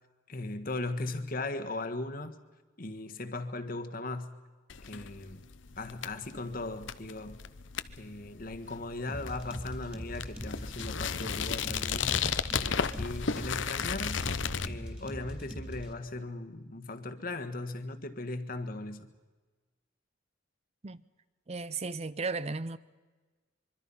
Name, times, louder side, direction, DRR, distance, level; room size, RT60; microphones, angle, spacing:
voice 1, 0.3-2.3 2.8-4.4 4.8-5.5 5.7-7.4 7.9-12.2 12.6-14.2 14.6-19.1, left 2 dB, 50° left, 1.6 m, -38 dB
sound 1, 4.7-14.7, left 6 dB, 85° left, 0.9 m, -35 dB
sound 2, 9.1-15.9, equal, 5° right, 3.1 m, -41 dB
voice 2, 21.5-22.8, right 3 dB, 35° right, 0.6 m, -35 dB
25.0 x 23.5 x 5.7 m
head